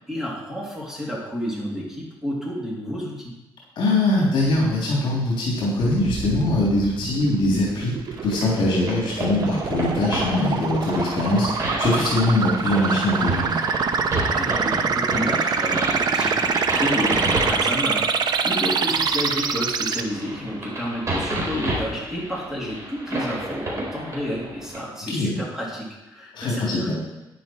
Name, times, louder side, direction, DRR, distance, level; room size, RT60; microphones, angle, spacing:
voice 1, 0.0-3.3 14.3-26.9, equal, 5° right, -4 dB, 3.1 m, -30 dB
voice 2, 3.8-7.9 8.2-13.5 25.1-25.4 26.3-26.9, left 2 dB, 60° left, -4 dB, 3.5 m, -22 dB
sound 1, 5.8-20.0, right 5 dB, 50° right, 0.8 m, -25 dB
sound 2, 8.1-24.8, right 1 dB, 35° right, 4.3 m, -31 dB
11.0 x 10.0 x 4.6 m, 0.99 s
cardioid pair, 140°, 9 cm